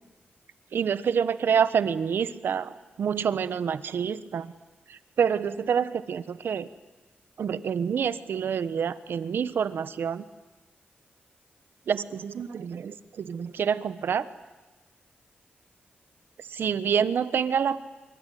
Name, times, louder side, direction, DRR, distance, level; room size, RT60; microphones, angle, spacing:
voice 1, 0.7-2.7 3.0-4.5 5.2-6.7 7.4-10.2 11.9-14.3 16.5-17.8, right 7 dB, 75° right, 14 dB, 1.2 m, -27 dB
25.5 x 23.5 x 9.3 m, 1.2 s
wide cardioid pair, 100°, 4 cm